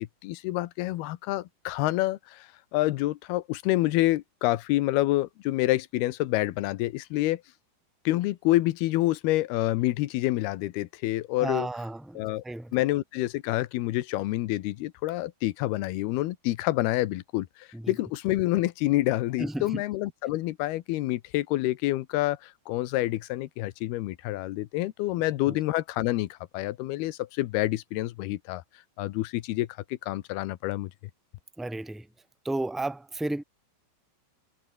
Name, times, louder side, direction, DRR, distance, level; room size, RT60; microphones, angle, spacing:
voice 1, 0.2-7.4 8.1-11.7 12.2-12.4 12.7-28.6 29.0-30.9, left 17 dB, 85° left, 2.9 m, -28 dB
voice 2, 11.4-12.7 17.7-17.9 19.4-19.8 25.5-25.6 31.6-32.1 32.4-33.4, right 2 dB, ahead, 1.1 m, -33 dB
omnidirectional pair, 4.4 m